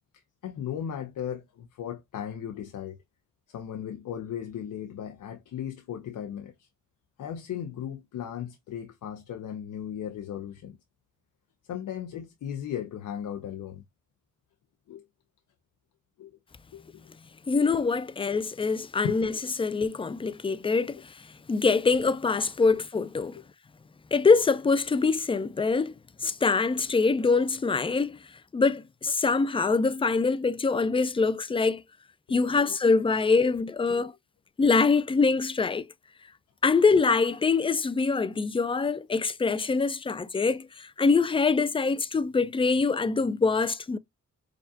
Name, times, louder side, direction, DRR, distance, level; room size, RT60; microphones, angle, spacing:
voice 1, 0.4-3.0 3.5-6.7 7.2-10.8 11.7-13.8 14.9-15.1 16.2-16.4 16.7-17.0 17.6-17.7 19.0-19.3 32.3-32.8 33.9-34.1, left 9 dB, 75° left, 0.6 m, -37 dB
voice 2, 17.5-19.3 19.6-21.1 21.5-23.4 24.1-25.9 26.2-28.2 28.5-31.8 32.3-34.1 34.6-35.8 36.6-44.0, left 4 dB, 20° left, 0.3 m, -24 dB
4.8 x 2.4 x 2.7 m
cardioid pair, 80°, 31 cm